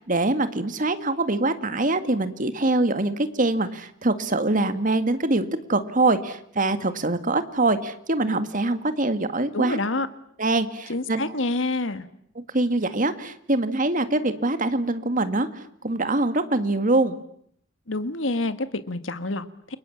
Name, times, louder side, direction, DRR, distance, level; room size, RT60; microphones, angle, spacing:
voice 1, 0.0-9.8 10.4-11.2 12.5-15.5 15.8-17.2, right 2 dB, 40° right, 10 dB, 2.0 m, -24 dB
voice 2, 9.5-10.1 10.9-12.1 17.9-19.8, left 2 dB, 70° left, 11 dB, 1.8 m, -27 dB
29.5 x 23.0 x 8.6 m, 0.69 s
head